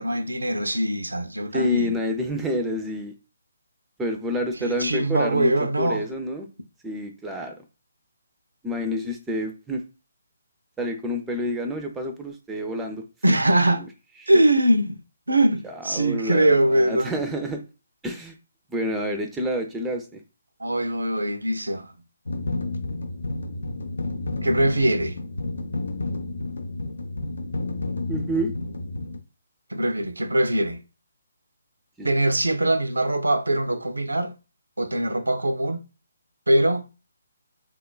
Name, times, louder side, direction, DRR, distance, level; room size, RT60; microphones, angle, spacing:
voice 1, 0.0-2.0 4.6-6.1 13.2-13.8 14.3-15.0 15.3-17.2 20.6-21.9 24.4-25.2 29.7-30.8 32.0-34.3 34.8-35.8 36.5-36.9, right 1 dB, 80° right, 0.4 m, -22 dB
voice 2, 1.5-3.1 4.0-6.5 6.8-7.5 8.6-9.8 10.8-13.0 15.6-17.6 18.0-18.4 18.7-20.2 28.1-28.5 32.0-32.1, equal, 5° right, 0.4 m, -28 dB
sound 1, 22.3-29.2, left 2 dB, 70° left, 0.4 m, -30 dB
3.1 x 2.2 x 2.2 m
figure-of-eight pair, 140°, 0 cm